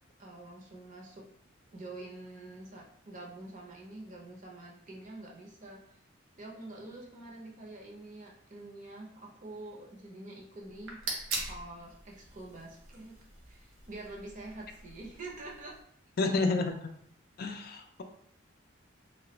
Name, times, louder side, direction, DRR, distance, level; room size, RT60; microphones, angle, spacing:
voice 1, 0.2-1.3 1.7-5.8 6.4-11.0 11.4-13.2 13.5-15.7 16.3-16.4, right 2 dB, 40° right, -1 dB, 0.6 m, -46 dB
sound 1, 10.6-15.8, right 2 dB, 80° right, 0.8 m, -42 dB
voice 2, 16.2-16.7 17.4-18.0, left 3 dB, 50° left, 5 dB, 0.3 m, -29 dB
3.0 x 2.3 x 2.9 m, 0.67 s
head